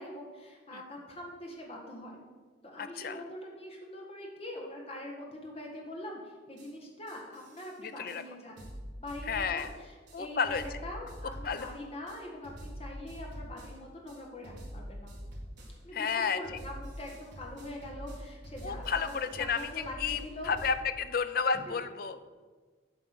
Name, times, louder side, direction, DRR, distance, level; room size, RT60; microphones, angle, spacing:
voice 1, 0.0-2.2 2.7-8.7 9.0-15.1 15.8-20.5 21.5-21.8, left 1 dB, 30° left, -1 dB, 1.6 m, -43 dB
voice 2, 2.8-3.2 7.8-8.2 9.3-9.7 10.1-10.6 11.4-11.7 15.9-16.4 18.6-19.7 20.0-20.2 20.4-22.2, left 6 dB, 50° left, 11 dB, 0.5 m, -31 dB
sound 1, 6.6-6.7 7.1-7.7 8.1-8.2 8.6-9.8 10.1-10.2 10.4-11.8 12.1-13.8 14.1-14.2 14.4-15.8 16.1-20.7, equal, 60° right, 2.0 m, -45 dB
8.8 x 5.0 x 6.0 m, 1.4 s
head